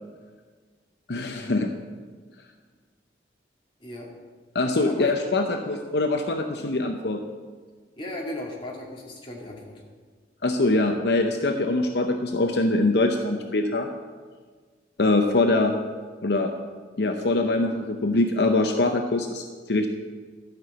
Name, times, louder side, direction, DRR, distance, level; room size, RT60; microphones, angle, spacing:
voice 1, 1.1-1.7 4.5-7.2 10.4-13.9 15.0-15.7 16.2-16.5 17.0-19.9, left 2 dB, 70° left, 5 dB, 0.7 m, -23 dB
voice 2, 8.0-9.8, left 1 dB, 30° left, -2 dB, 2.1 m, -36 dB
13.0 x 5.9 x 7.9 m, 1.5 s
head